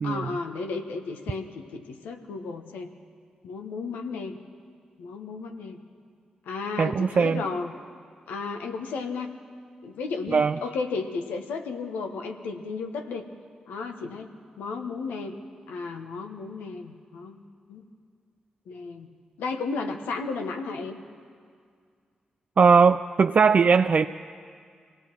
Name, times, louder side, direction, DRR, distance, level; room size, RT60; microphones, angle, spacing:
voice 1, 0.0-2.9 3.4-4.4 5.0-5.8 6.4-7.7 8.3-9.3 9.8-13.3 13.7-14.3 14.6-15.3 15.7-17.4 17.7-17.8 18.7-19.1 19.4-21.0, left 4 dB, 85° left, 5 dB, 1.2 m, -33 dB
voice 2, 6.8-7.4 10.3-10.6 22.6-24.1, right 5 dB, 55° right, 9 dB, 0.4 m, -19 dB
24.5 x 17.5 x 6.1 m, 2.2 s
supercardioid pair, 40°, 3 cm